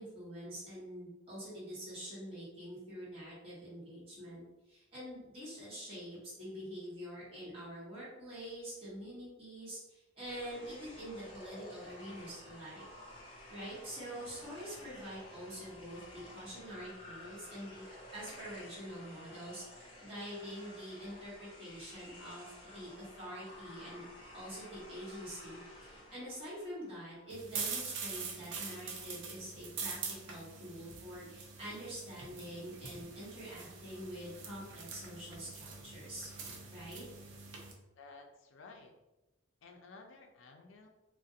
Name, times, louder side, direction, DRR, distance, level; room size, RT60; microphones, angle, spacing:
voice 1, 0.0-4.4 4.7-12.8 13.5-24.0 24.3-36.3 36.7-37.0, equal, 30° right, -10 dB, 1.1 m, -46 dB
sound 1, 10.2-27.6, left 1 dB, 25° left, 0.6 m, -53 dB
sound 2, 27.3-37.7, right 5 dB, 75° right, 0.4 m, -44 dB
voice 2, 38.0-38.9 39.6-40.9, left 3 dB, 85° left, 4 dB, 0.4 m, -54 dB
2.4 x 2.1 x 2.6 m, 1.0 s
head